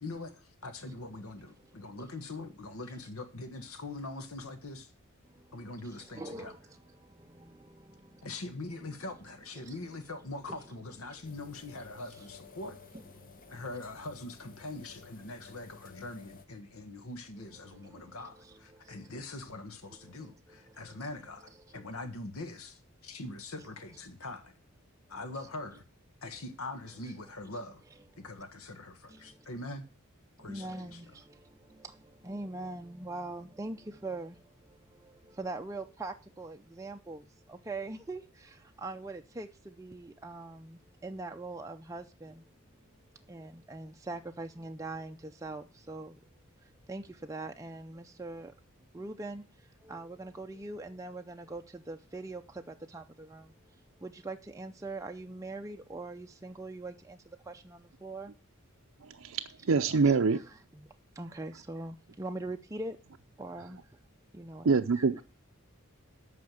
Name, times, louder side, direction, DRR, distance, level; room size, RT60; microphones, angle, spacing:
voice 1, 0.0-4.9 5.5-6.5 8.2-12.8 13.5-24.5 25.1-25.8 26.2-27.8 28.2-29.9 30.4-31.0, left 2 dB, 80° left, 1.5 m, -43 dB
voice 2, 5.2-8.3 9.6-9.8 10.5-10.6 11.1-11.2 11.9-12.3 12.9-13.6 17.4-19.1 19.9-21.0 21.6-21.9 27.0-27.1 29.1-29.5 30.4-42.5 43.3-46.2 46.6-48.5 48.9-58.3 59.9-60.9 61.2-63.0 63.4-64.0 64.3-64.7 64.9-65.1, right 2 dB, 15° right, 0.5 m, -43 dB
sound 1, 11.2-16.5, left 5 dB, 40° left, 0.9 m, -54 dB
voice 3, 59.0-60.4 64.6-65.2, right 4 dB, 65° right, 0.6 m, -26 dB
8.7 x 5.8 x 7.7 m
head